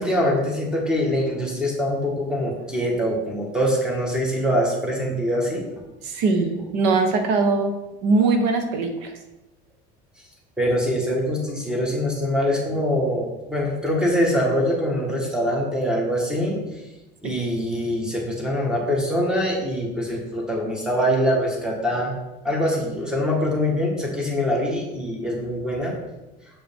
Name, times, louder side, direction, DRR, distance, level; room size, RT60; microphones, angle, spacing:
voice 1, 0.0-5.7 10.6-16.6 17.2-22.1 22.4-25.9, equal, 5° right, -2 dB, 1.4 m, -23 dB
voice 2, 6.0-7.7 8.0-9.1 17.2-17.3, right 3 dB, 80° right, 5 dB, 1.1 m, -21 dB
7.1 x 5.0 x 3.6 m, 1.0 s
cardioid pair, 150°, 21 cm